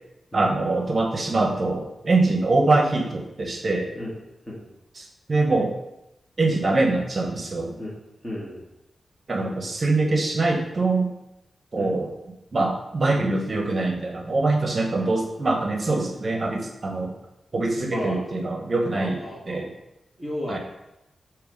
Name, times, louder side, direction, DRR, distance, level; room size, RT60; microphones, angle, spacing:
voice 1, 0.3-3.9 5.0-5.7 6.4-7.7 9.3-11.1 11.7-12.1 12.5-17.1 17.5-19.7 20.5-20.6, right 2 dB, 40° right, 2 dB, 0.9 m, -23 dB
voice 2, 8.2-8.6 11.7-11.9 17.9-18.2 18.9-19.6 20.2-20.6, left 1 dB, 15° left, -8 dB, 1.5 m, -33 dB
6.9 x 2.9 x 5.1 m, 0.91 s
wide cardioid pair, 100°, 0 cm